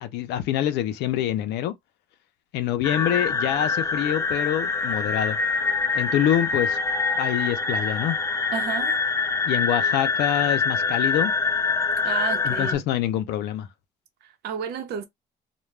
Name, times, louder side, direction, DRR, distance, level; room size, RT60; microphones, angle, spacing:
voice 1, 0.0-1.7 2.5-5.4 5.9-6.8 7.2-8.2 9.4-11.3 12.4-13.7, left 11 dB, 85° left, 0.5 m, -25 dB
sound 1, 2.8-12.7, left 4 dB, 20° left, 0.4 m, -25 dB
voice 2, 8.5-9.0 12.0-12.8 14.2-15.1, right 8 dB, 75° right, 0.8 m, -31 dB
2.2 x 2.2 x 3.2 m
cardioid pair, 110°, 17 cm